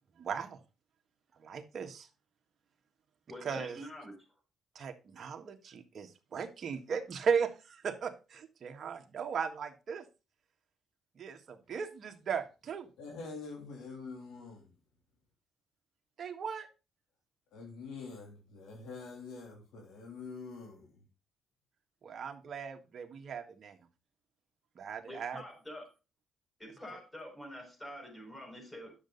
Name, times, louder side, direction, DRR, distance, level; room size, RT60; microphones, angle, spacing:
voice 1, 0.2-0.6 1.4-2.1 3.4-3.8 4.8-10.1 11.2-12.9 16.2-16.7 22.0-23.8 24.8-25.4, right 6 dB, 55° right, 1.6 m, -37 dB
voice 2, 3.3-4.2 25.1-25.9 26.6-28.9, equal, 10° left, 5.0 m, -46 dB
voice 3, 13.0-14.7 17.5-21.1, left 4 dB, 85° left, 3.0 m, -46 dB
10.0 x 6.8 x 4.0 m
cardioid pair, 90°, 0 cm